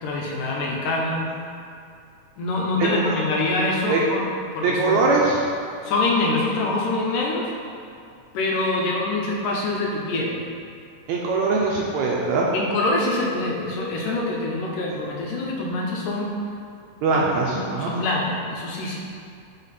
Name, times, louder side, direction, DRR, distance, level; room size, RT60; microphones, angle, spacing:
voice 1, 0.0-1.2 2.4-4.3 4.5-5.0 5.8-7.5 8.3-10.4 12.5-16.3 17.1-19.0, left 2 dB, 90° left, -2 dB, 2.6 m, -25 dB
voice 2, 2.8-3.2 3.9-4.0 4.6-5.4 11.1-12.5 17.0-17.9, right 3 dB, 80° right, -3 dB, 1.7 m, -22 dB
7.1 x 5.0 x 4.2 m, 2.4 s
omnidirectional pair, 3.7 m